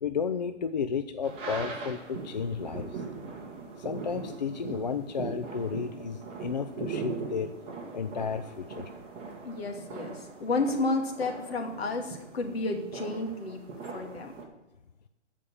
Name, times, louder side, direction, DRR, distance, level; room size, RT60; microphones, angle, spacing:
voice 1, 0.0-3.0 3.8-7.5 7.9-8.9, left 6 dB, 40° left, 8 dB, 0.4 m, -33 dB
sound 1, 1.2-14.4, right 4 dB, 15° right, 1.5 m, -40 dB
voice 2, 9.4-13.6 13.9-14.3, left 3 dB, 55° left, 2 dB, 2.4 m, -31 dB
14.0 x 5.1 x 7.1 m, 0.99 s
figure-of-eight pair, 140°, 36 cm